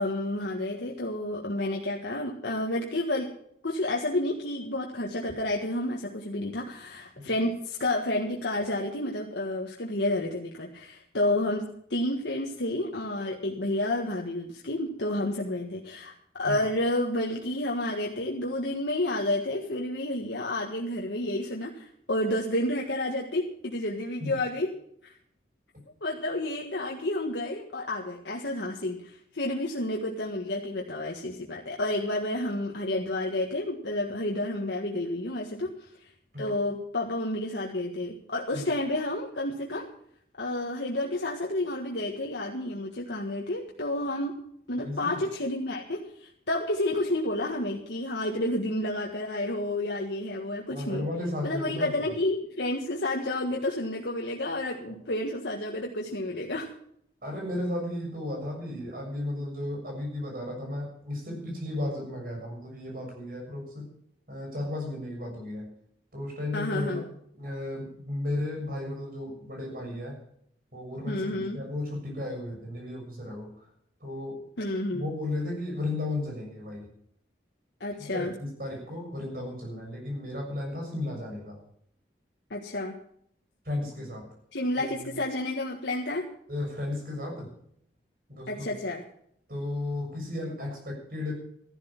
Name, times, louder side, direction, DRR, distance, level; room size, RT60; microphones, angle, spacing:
voice 1, 0.0-3.3 3.6-16.1 16.4-24.7 25.0-25.1 26.0-36.1 36.4-39.9 40.4-44.4 44.7-51.0 51.4-56.7 66.5-67.0 71.1-71.6 74.6-75.1 77.8-78.3 82.5-83.0 84.5-86.3 88.5-89.0, left 1 dB, 85° left, -1 dB, 1.7 m, -30 dB
voice 2, 44.8-45.2 50.7-52.1 57.2-63.9 64.3-65.7 66.1-67.0 67.3-70.2 70.7-73.5 74.0-74.4 74.9-76.9 78.0-81.6 83.7-84.3 84.8-85.2 86.5-87.5 88.3-88.7 89.5-91.3, left 1 dB, 55° right, 1 dB, 6.9 m, -34 dB
14.0 x 12.0 x 5.9 m, 0.69 s
head